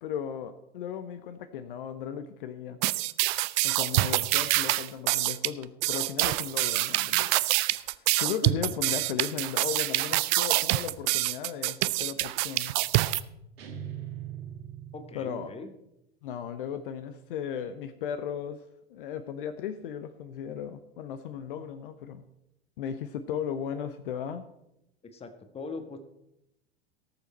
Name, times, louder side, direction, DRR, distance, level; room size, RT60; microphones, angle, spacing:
voice 1, 0.0-2.8 3.6-7.3 7.8-12.8 15.1-15.5 16.2-18.6 18.9-22.2 22.8-24.4, left 8 dB, 55° left, 10 dB, 0.8 m, -36 dB
sound 1, 2.8-13.2, right 20 dB, 35° right, 0.4 m, -26 dB
sound 2, 13.6-15.6, right 10 dB, 65° right, 2.0 m, -41 dB
voice 2, 14.9-15.7 25.1-26.0, left 3 dB, 20° left, 8 dB, 1.4 m, -41 dB
18.0 x 7.0 x 4.3 m, 0.84 s
figure-of-eight pair, 90°, 32 cm